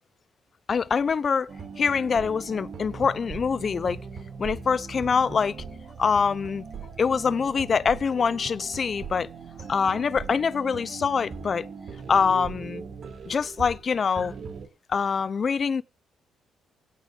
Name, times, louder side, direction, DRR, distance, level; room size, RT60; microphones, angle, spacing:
voice 1, 0.7-1.5 1.8-4.0 4.4-5.6 6.0-6.6 7.0-9.3 9.7-11.7 12.1-12.8 13.3-14.3 14.9-15.8, left 6 dB, 45° left, 0.7 m, -24 dB
sound 1, 1.5-13.9 14.2-14.7, right 5 dB, 55° right, 3.9 m, -40 dB
17.0 x 6.5 x 6.9 m
cardioid pair, 90°, 0 cm